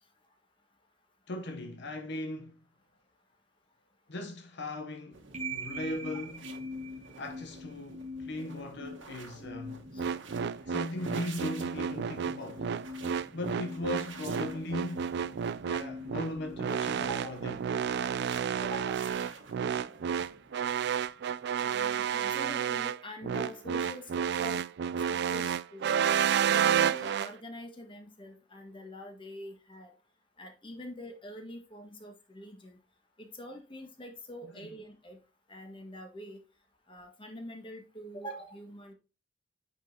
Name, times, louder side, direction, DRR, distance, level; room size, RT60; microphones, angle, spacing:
voice 1, 1.3-2.5 4.1-5.2 5.5-6.4 7.2-9.8 10.6-12.7 13.3-15.1 15.6-17.5 34.5-34.7, left 1 dB, 65° left, 0.8 m, -38 dB
sound 1, 5.1-21.8, right 4 dB, 80° right, 1.3 m, -51 dB
sound 2, 5.3-17.4, left 1 dB, 40° right, 1.2 m, -44 dB
sound 3, 10.0-27.3, right 8 dB, 60° right, 0.4 m, -30 dB
voice 2, 17.0-17.3 18.6-19.1 21.6-24.6 25.1-25.9 26.5-29.9 30.4-32.8 33.2-35.2 35.5-36.4 36.9-38.9, equal, 30° left, 1.7 m, -44 dB
8.9 x 5.2 x 2.8 m
head